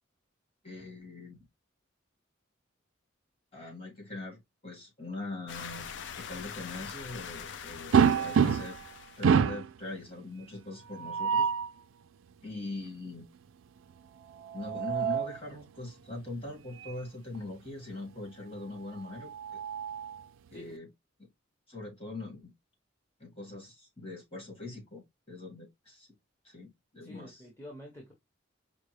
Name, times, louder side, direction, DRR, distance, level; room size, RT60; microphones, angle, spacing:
voice 1, 0.6-1.4 3.5-5.9 6.2-8.8 9.2-11.5 12.4-13.3 14.5-19.3 20.5-20.9 21.7-22.5 23.2-26.1 26.4-27.4, left 2 dB, 30° left, 1.8 m, -42 dB
sound 1, 5.5-9.4, left 7 dB, 65° left, 0.4 m, -43 dB
sound 2, 7.9-8.9 9.2-9.7 10.9-11.7 14.3-15.4 16.8-17.0 17.3-17.4 19.0-20.2, right 7 dB, 90° right, 0.4 m, -27 dB
voice 2, 27.0-28.1, left 1 dB, 10° left, 1.0 m, -48 dB
5.1 x 2.3 x 3.2 m
head